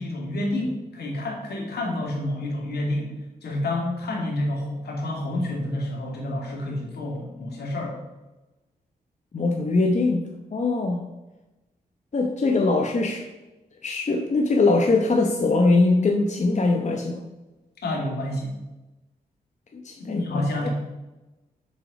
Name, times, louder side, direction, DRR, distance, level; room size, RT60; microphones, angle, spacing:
voice 1, 0.0-3.1 3.4-8.0 17.8-18.5 20.0-20.7, left 1 dB, 75° left, -1 dB, 2.4 m, -29 dB
voice 2, 9.3-11.0 12.1-13.3 13.8-17.2 19.7-20.7, left 3 dB, 45° left, 2 dB, 1.0 m, -22 dB
6.4 x 6.3 x 5.0 m, 1.1 s
supercardioid pair, 45°, 17 cm